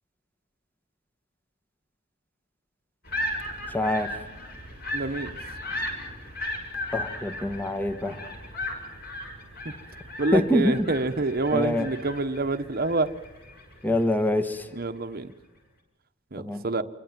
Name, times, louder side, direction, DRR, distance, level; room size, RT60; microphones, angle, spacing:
sound 1, 3.0-14.6, left 1 dB, 45° left, 6.7 m, -36 dB
voice 1, 3.7-4.1 6.9-8.2 10.3-10.9 11.5-11.9 13.8-14.7 16.4-16.6, left 1 dB, 10° left, 9 dB, 1.4 m, -25 dB
voice 2, 4.9-5.3 10.2-13.1 14.7-15.3 16.3-16.8, right 3 dB, 45° right, 7 dB, 1.1 m, -27 dB
27.0 x 24.0 x 7.5 m, 0.97 s
head